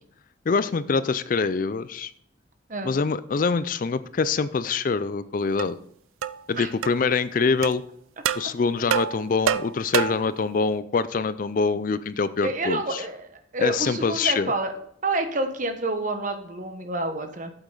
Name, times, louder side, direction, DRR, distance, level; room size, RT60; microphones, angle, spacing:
voice 1, 0.5-2.1 2.8-5.8 6.5-7.8 8.4-13.0 13.6-14.5, left 4 dB, 40° left, 15 dB, 0.3 m, -25 dB
sound 1, 5.6-5.7 6.2-6.4 6.8-7.0 7.6-7.7 8.3-8.5 8.9-10.3, right 8 dB, 85° right, 0.4 m, -26 dB
voice 2, 12.4-13.2 13.5-14.7 15.0-17.5, right 2 dB, 40° right, 7 dB, 1.1 m, -28 dB
8.3 x 8.1 x 3.9 m, 0.66 s
head